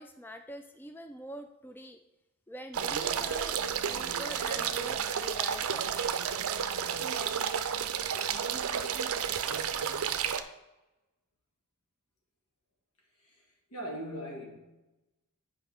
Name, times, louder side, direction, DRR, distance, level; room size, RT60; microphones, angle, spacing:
voice 1, 0.0-2.0 2.5-5.9, equal, 10° left, 0.3 m, -45 dB
sound 1, 2.7-10.4, right 7 dB, 65° right, 0.5 m, -31 dB
voice 2, 13.2-14.6, equal, 80° left, 1.9 m, -40 dB
10.0 x 5.1 x 3.5 m
head